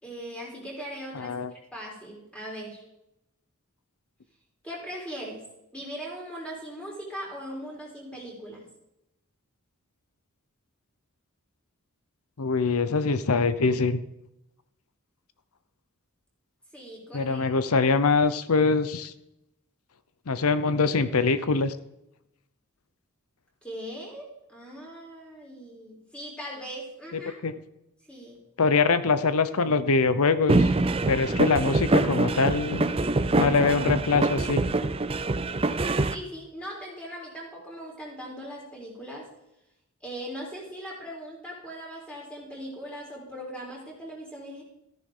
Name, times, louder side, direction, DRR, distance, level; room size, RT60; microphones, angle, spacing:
voice 1, 0.0-1.3 1.7-2.8 4.6-5.4 5.7-8.7 16.7-17.5 23.6-27.3 28.1-28.4 36.1-39.3 40.0-44.6, equal, 5° left, -3 dB, 3.9 m, -39 dB
voice 2, 1.2-1.5 12.4-14.0 17.1-19.1 20.3-21.8 27.1-27.5 28.6-30.7 31.1-32.9 33.3-34.6, left 4 dB, 75° left, 13 dB, 0.8 m, -23 dB
sound 1, 30.5-36.1, right 2 dB, 25° right, 0.5 m, -24 dB
14.0 x 10.5 x 3.8 m, 0.85 s
head